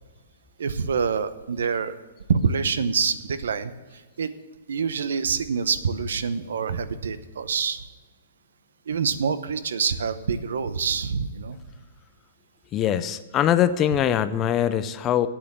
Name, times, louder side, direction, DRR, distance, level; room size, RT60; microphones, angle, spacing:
voice 1, 0.6-1.9 2.3-4.3 4.7-7.8 8.9-11.6, right 6 dB, 85° right, 13 dB, 0.8 m, -26 dB
voice 2, 12.7-15.3, left 10 dB, 20° left, 13 dB, 0.4 m, -22 dB
8.9 x 8.6 x 7.2 m, 1.3 s
hypercardioid pair, 165°, 0 cm